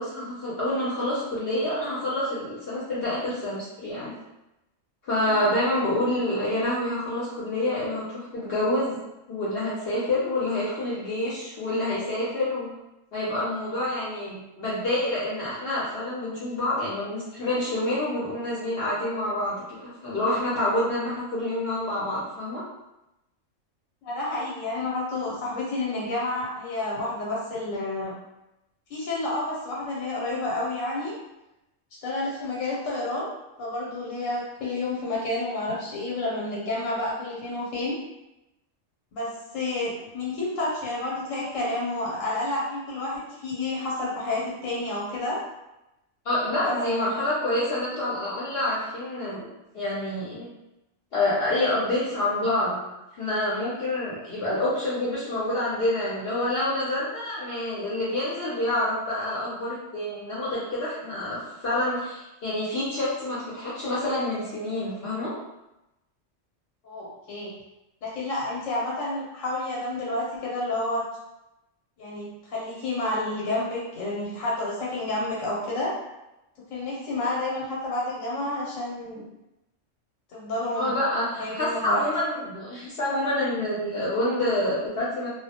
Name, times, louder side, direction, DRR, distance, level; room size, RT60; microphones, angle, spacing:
voice 1, 0.0-4.1 5.0-9.0 9.3-12.7 13.1-22.6 46.2-50.5 51.1-52.8 53.2-65.3 80.7-85.3, left 1 dB, 60° left, -8 dB, 0.8 m, -27 dB
voice 2, 24.0-28.1 28.9-31.1 32.0-33.3 33.6-38.0 39.1-45.4 46.6-47.1 66.8-67.5 68.0-71.0 72.0-75.9 76.7-79.2 80.3-80.9 81.4-82.0, left 2 dB, 90° left, -5 dB, 1.0 m, -30 dB
2.2 x 2.0 x 2.7 m, 0.93 s
omnidirectional pair, 1.3 m